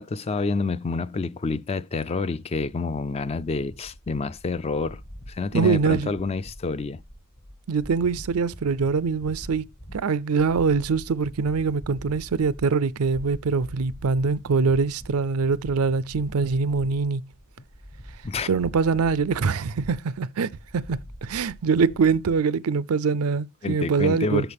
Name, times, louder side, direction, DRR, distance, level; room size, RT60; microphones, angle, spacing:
voice 1, 0.0-5.0 5.3-7.0 18.2-18.5 23.6-24.5, left 3 dB, 30° left, 0.4 m, -28 dB
sound 1, 2.7-22.4, equal, 45° left, 2.1 m, -44 dB
voice 2, 5.5-6.1 7.7-9.6 9.9-17.2 18.5-24.4, right 5 dB, 90° right, 0.5 m, -23 dB
13.5 x 4.6 x 3.5 m
head